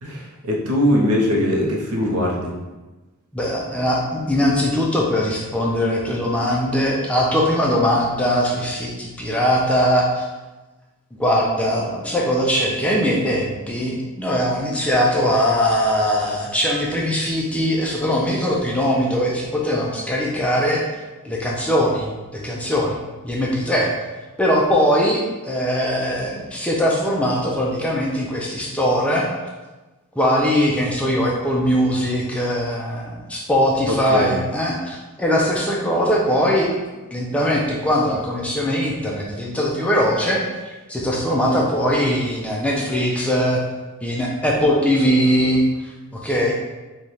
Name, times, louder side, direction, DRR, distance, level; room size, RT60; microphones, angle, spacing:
voice 1, 0.0-2.5 33.9-34.3, left 1 dB, 75° right, -1 dB, 0.8 m, -21 dB
voice 2, 3.3-10.3 11.2-20.9 21.2-23.9 24.4-29.3 30.2-36.7 37.1-40.4 40.9-43.6 44.0-46.5, equal, 5° left, -3 dB, 0.4 m, -21 dB
3.2 x 2.3 x 4.1 m, 1.2 s
head